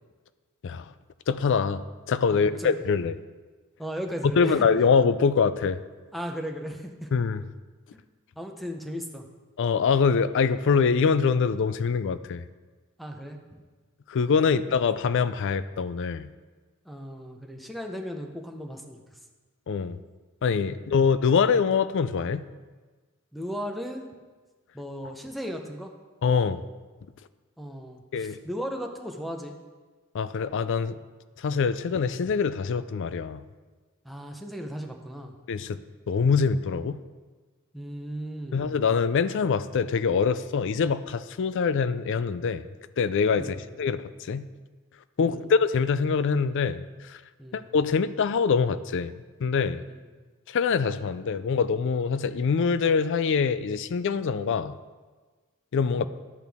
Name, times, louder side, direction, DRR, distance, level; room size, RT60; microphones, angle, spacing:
voice 1, 1.3-3.2 4.4-5.8 7.1-7.4 9.6-12.4 14.1-16.3 19.7-20.0 20.4-22.4 25.0-25.1 26.2-26.6 28.1-28.4 30.1-31.0 31.4-33.4 35.5-35.8 36.1-37.0 38.5-42.6 43.0-44.5 45.2-47.2 47.5-49.8 50.5-54.7 55.7-56.1, left 5 dB, 60° left, 14 dB, 0.4 m, -24 dB
voice 2, 2.3-2.7 3.8-4.6 6.1-7.1 8.4-9.2 13.0-13.4 14.5-14.6 16.9-19.0 20.7-20.8 23.3-24.1 24.7-25.9 27.6-29.6 34.0-35.3 37.7-38.7 43.4-43.7 45.2-45.5 47.4-47.6 49.9-50.0 56.0-56.1, equal, ahead, 3 dB, 0.7 m, -36 dB
11.0 x 8.1 x 3.5 m, 1.3 s
head